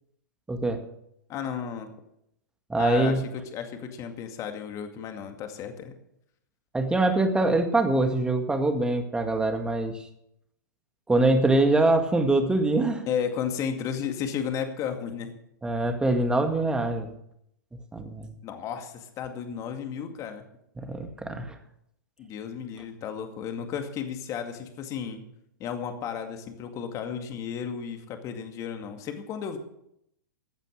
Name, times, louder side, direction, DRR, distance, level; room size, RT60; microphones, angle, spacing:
voice 1, 0.5-0.8 2.7-3.2 6.7-9.9 11.1-13.0 15.6-17.1 17.9-18.3 20.8-21.5, right 2 dB, 10° right, 6 dB, 1.9 m, -24 dB
voice 2, 1.3-1.9 2.8-5.9 13.1-15.3 18.4-20.4 22.2-25.2 25.6-29.6, left 7 dB, 30° left, 6 dB, 2.2 m, -33 dB
15.5 x 9.2 x 6.5 m, 0.75 s
hypercardioid pair, 115°, 10 cm